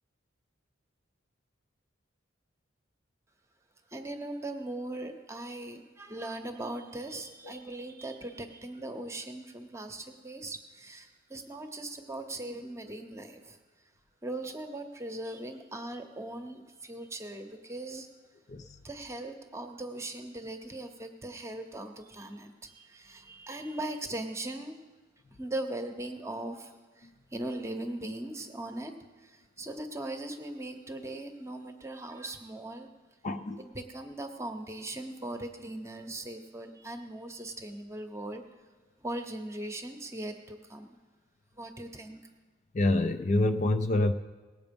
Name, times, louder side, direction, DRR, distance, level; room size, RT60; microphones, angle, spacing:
voice 1, 3.9-13.9 14.2-18.1 18.8-24.8 25.4-32.9 33.6-38.4 39.0-40.9 41.5-42.3, right 1 dB, 15° right, 6 dB, 0.9 m, -39 dB
voice 2, 33.2-33.6 42.7-44.1, left 2 dB, 35° left, 8 dB, 0.4 m, -26 dB
18.5 x 7.8 x 5.3 m, 1.3 s
head